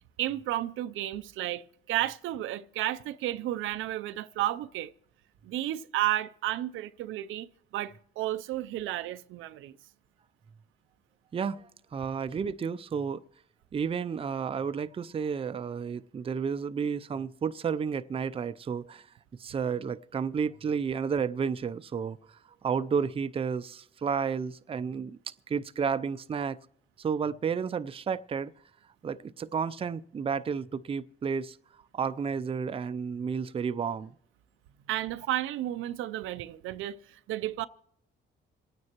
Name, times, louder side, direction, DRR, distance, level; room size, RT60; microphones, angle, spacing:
voice 1, 0.2-4.9 5.4-9.8 34.9-37.7, right 14 dB, 85° right, 0.5 m, -32 dB
voice 2, 11.3-13.2 13.7-19.1 19.4-26.6 27.0-28.5 29.0-31.6 31.9-34.1, right 6 dB, 30° right, 0.4 m, -32 dB
27.0 x 9.5 x 3.0 m
cardioid pair, 90°, 20 cm